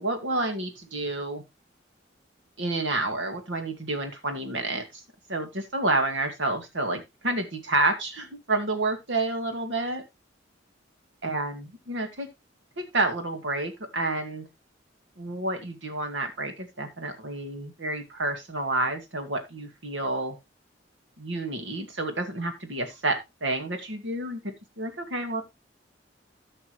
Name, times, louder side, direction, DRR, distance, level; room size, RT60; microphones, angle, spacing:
voice 1, 0.0-1.4 2.6-5.0 5.3-10.0 11.2-12.3 12.8-14.4 15.2-20.4 21.2-25.4, right 2 dB, 80° right, 6 dB, 2.2 m, -29 dB
14.5 x 5.9 x 3.2 m, 0.22 s
head